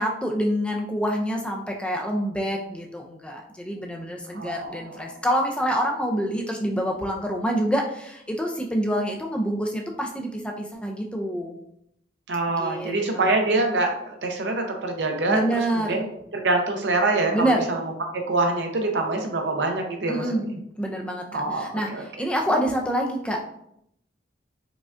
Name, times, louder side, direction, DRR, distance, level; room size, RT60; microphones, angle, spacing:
voice 1, 0.0-11.6 12.6-13.3 15.3-16.0 17.3-17.6 20.1-20.4 20.8-23.4, equal, 5° left, 1 dB, 0.3 m, -27 dB
voice 2, 4.3-4.8 12.3-17.8 18.1-20.6 21.3-22.0, right 2 dB, 70° right, 3 dB, 0.6 m, -25 dB
4.9 x 2.2 x 2.4 m, 0.74 s
head